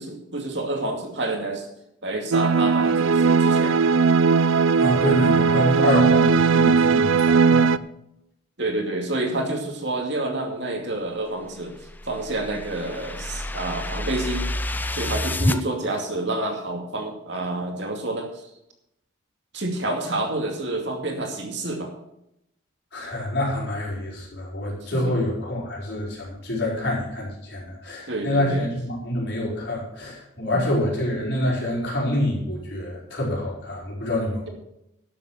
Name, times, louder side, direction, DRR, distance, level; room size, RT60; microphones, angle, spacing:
voice 1, 0.0-1.7 2.0-3.8 8.6-11.7 12.0-14.5 14.9-18.3 19.5-21.9 24.9-25.1 28.1-28.6, right 2 dB, 55° right, 2 dB, 2.5 m, -28 dB
sound 1, 2.3-7.8, right 5 dB, 85° right, 0.5 m, -18 dB
voice 2, 4.8-7.7 22.9-34.5, left 1 dB, 55° left, -4 dB, 5.2 m, -26 dB
sound 2, 11.6-15.6, left 1 dB, 10° left, 0.4 m, -28 dB
12.0 x 7.7 x 6.6 m, 0.82 s
head